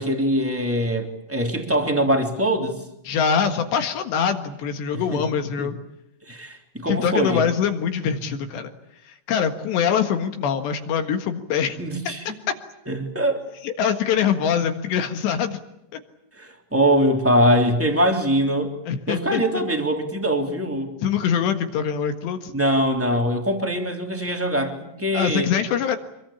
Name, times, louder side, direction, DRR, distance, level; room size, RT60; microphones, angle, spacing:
voice 1, 0.0-2.7 4.9-5.2 5.6-5.7 6.3-7.4 11.8-12.2 12.9-13.5 16.4-18.7 19.1-20.9 22.5-25.5, equal, 5° right, 3 dB, 1.8 m, -22 dB
voice 2, 3.0-5.8 6.9-8.7 9.1-11.8 13.6-15.6 15.9-16.0 18.9-19.4 21.0-22.5 25.1-26.0, left 7 dB, 65° left, 7 dB, 3.5 m, -23 dB
26.0 x 23.5 x 8.8 m, 0.83 s
omnidirectional pair, 5.9 m